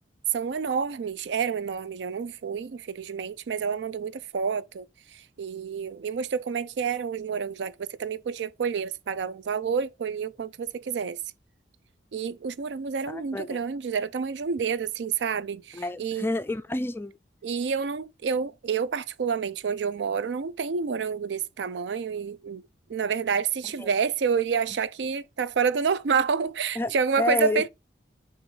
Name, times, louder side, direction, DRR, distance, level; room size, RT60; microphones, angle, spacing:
voice 1, 0.3-4.9 5.1-11.2 12.1-16.3 17.4-22.6 22.9-27.7, right 6 dB, 80° right, 0.4 m, -29 dB
voice 2, 13.1-13.6 15.7-17.1 23.8-23.9 26.8-26.9 27.2-27.7, left 2 dB, 10° left, 0.3 m, -29 dB
5.9 x 3.1 x 5.4 m
head